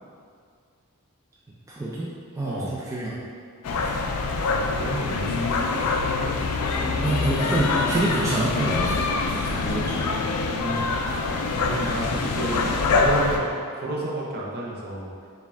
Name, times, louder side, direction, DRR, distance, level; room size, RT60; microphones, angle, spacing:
voice 1, 1.7-3.2 6.8-9.0 9.3-10.1, right 1 dB, 15° right, -7 dB, 0.3 m, -27 dB
voice 2, 2.4-2.8 4.4-5.5 9.3-9.5 10.5-10.9 11.6-15.1, right 1 dB, 45° right, -4 dB, 0.7 m, -31 dB
sound 1, 3.6-13.4, left 3 dB, 80° left, 0.4 m, -25 dB
4.6 x 2.4 x 3.4 m, 2.1 s
head